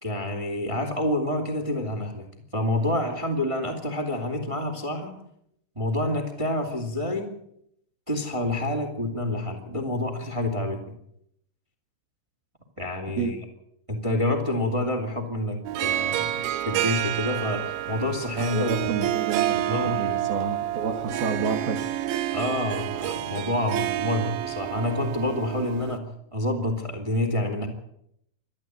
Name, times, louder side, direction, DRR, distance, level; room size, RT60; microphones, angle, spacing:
voice 1, 0.0-2.3 2.5-5.2 5.7-7.3 8.1-10.8 12.8-13.4 13.9-18.9 19.7-20.0 22.3-27.7, left 1 dB, 25° right, 5 dB, 0.6 m, -28 dB
Harp, 15.7-26.0, right 13 dB, 75° right, 3.2 m, -29 dB
voice 2, 18.5-21.8, right 5 dB, 60° right, 5 dB, 2.9 m, -30 dB
26.5 x 11.0 x 9.3 m, 0.74 s
omnidirectional pair, 5.9 m